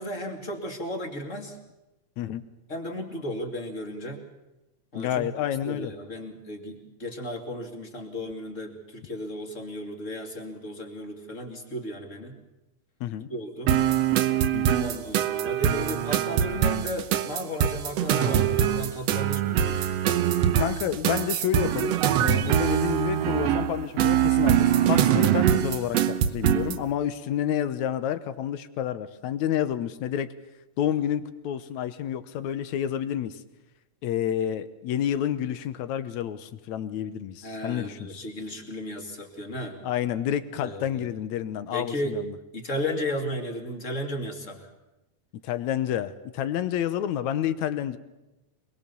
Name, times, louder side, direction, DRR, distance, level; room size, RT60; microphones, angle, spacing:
voice 1, 0.0-1.6 2.7-4.2 4.9-5.3 5.6-12.4 13.3-13.7 14.8-19.9 37.4-39.8 40.6-41.1 41.7-42.1 42.5-44.7, equal, 25° left, 4 dB, 2.5 m, -34 dB
voice 2, 5.0-5.9 13.0-13.3 14.5-14.8 20.6-30.3 30.8-33.4 34.0-38.2 39.8-42.3 45.4-48.0, left 10 dB, 75° left, 12 dB, 2.3 m, -29 dB
sound 1, 13.7-26.8, right 10 dB, 65° right, 2.0 m, -23 dB
24.0 x 22.0 x 7.0 m, 0.97 s
omnidirectional pair, 3.4 m